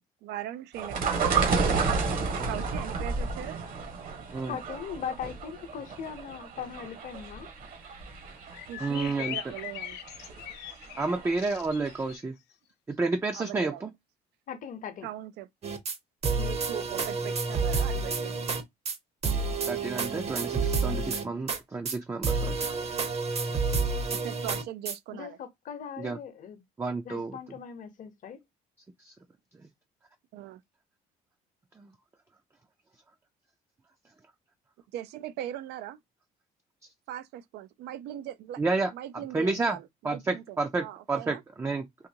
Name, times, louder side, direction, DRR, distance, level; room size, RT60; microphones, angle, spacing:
voice 1, 0.2-2.1 2.5-3.6 8.7-10.0 10.9-11.1 13.3-13.9 15.0-15.5 16.3-18.5 21.2-21.4 24.1-25.4 30.3-30.6 34.9-36.0 37.1-38.6 38.9-41.4, right 12 dB, 85° right, 0.5 m, -40 dB
sound 1, 0.8-11.5 11.9-12.0, right 4 dB, 55° right, 1.2 m, -31 dB
voice 2, 4.5-7.5 14.5-15.1 25.1-26.6 27.0-28.4, left 7 dB, 50° left, 0.8 m, -39 dB
sound 2, 7.9-8.0 8.2-8.3 8.5-12.2, left 12 dB, 85° left, 0.5 m, -40 dB
voice 3, 8.8-9.4 11.0-12.3 12.9-13.9 19.6-22.7 26.0-26.2 26.8-27.4 29.0-29.1 31.8-31.9 38.6-38.9 39.3-39.8 40.0-42.1, right 3 dB, 15° right, 0.4 m, -30 dB
sound 3, 15.6-16.0 16.2-18.6 18.9-19.0 19.2-21.6 21.9-22.0 22.2-25.0, right 4 dB, 40° right, 0.8 m, -29 dB
3.9 x 2.6 x 2.7 m
cardioid pair, 110°, 17 cm